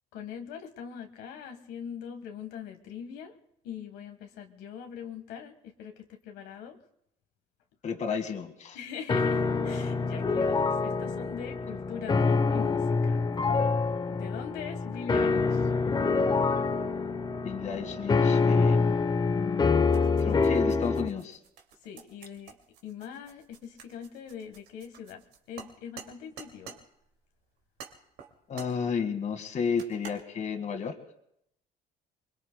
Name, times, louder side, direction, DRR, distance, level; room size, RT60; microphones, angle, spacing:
voice 1, 0.1-3.3 3.6-6.8 8.7-13.2 14.1-15.7 21.8-22.6 22.8-26.8, left 8 dB, 90° left, 4 dB, 1.5 m, -42 dB
voice 2, 7.8-8.8 17.4-19.0 19.3-19.8 20.2-21.4 28.5-31.0, left 6 dB, 45° left, 6 dB, 1.9 m, -32 dB
sound 1, 9.1-21.1, left 4 dB, 25° left, 0.9 m, -26 dB
sound 2, 19.9-26.8 27.8-28.8 29.8-30.2, right 7 dB, 85° right, 2.4 m, -48 dB
29.0 x 22.0 x 2.2 m, 0.76 s
cardioid pair, 110°, 17 cm